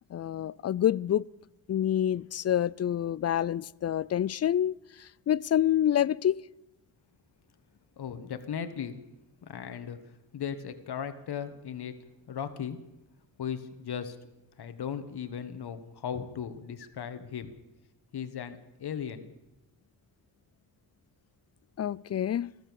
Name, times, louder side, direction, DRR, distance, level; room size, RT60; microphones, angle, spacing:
voice 1, 0.1-1.3 1.7-6.4 21.8-22.5, left 10 dB, 35° left, 0.4 m, -27 dB
voice 2, 8.0-9.0 9.4-10.0 10.3-12.0 12.3-12.8 13.4-14.2 14.6-17.5 18.1-19.3, left 8 dB, 60° left, 1.5 m, -37 dB
15.0 x 13.5 x 7.1 m
cardioid pair, 60°, 43 cm